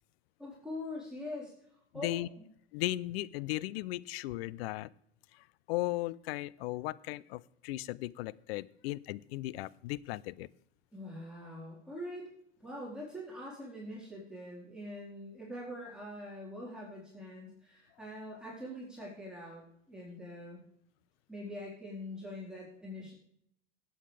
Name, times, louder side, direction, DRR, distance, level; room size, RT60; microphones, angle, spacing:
voice 1, 0.4-1.5 1.9-2.2 10.9-12.3 12.6-19.6 19.9-20.6 21.3-23.1, left 1 dB, ahead, -6 dB, 4.3 m, -43 dB
voice 2, 2.7-4.9 5.3-10.5, left 17 dB, 65° left, 21 dB, 0.5 m, -36 dB
16.5 x 8.9 x 3.3 m, 0.69 s
hypercardioid pair, 90°, 33 cm